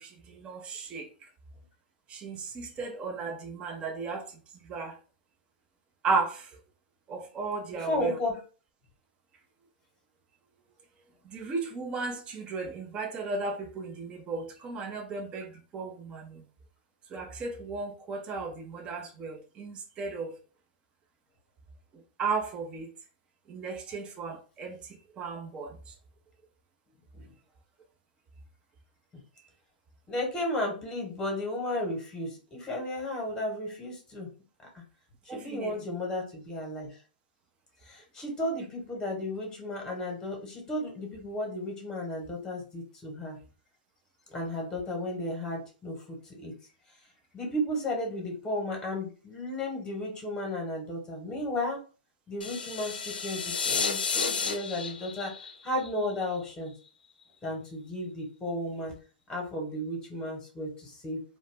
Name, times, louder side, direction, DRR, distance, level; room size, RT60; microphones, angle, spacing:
voice 1, 0.4-1.1 2.1-4.2 4.7-4.9 6.0-6.4 7.1-8.1 11.3-15.5 15.7-16.4 17.1-20.3 22.2-22.9 23.5-24.7 25.2-25.7 35.3-35.7, right 4 dB, 20° right, 4 dB, 0.4 m, -34 dB
voice 2, 7.7-8.4 27.1-27.3 30.1-34.3 34.7-34.8 35.2-36.9 37.8-43.4 44.3-46.5 47.3-51.8 52.3-55.3 55.6-56.7 57.4-58.9 59.3-61.2, left 1 dB, 15° left, 1 dB, 1.0 m, -34 dB
sound 1, 52.4-56.5, left 5 dB, 85° left, 0.4 m, -32 dB
2.1 x 2.0 x 3.3 m, 0.36 s
hypercardioid pair, 125°, 5 cm